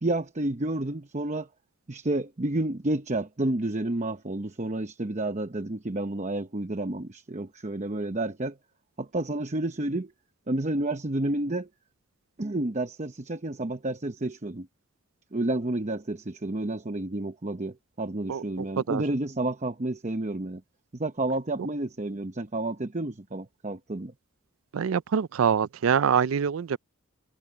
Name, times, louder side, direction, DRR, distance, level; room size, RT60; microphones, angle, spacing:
voice 1, 0.0-1.5 1.9-8.6 9.0-10.1 10.5-11.7 12.4-14.7 15.3-20.6 20.9-24.1, right 2 dB, 35° right, 0.9 m, -30 dB
voice 2, 24.7-26.8, right 7 dB, 75° right, 0.4 m, -24 dB
head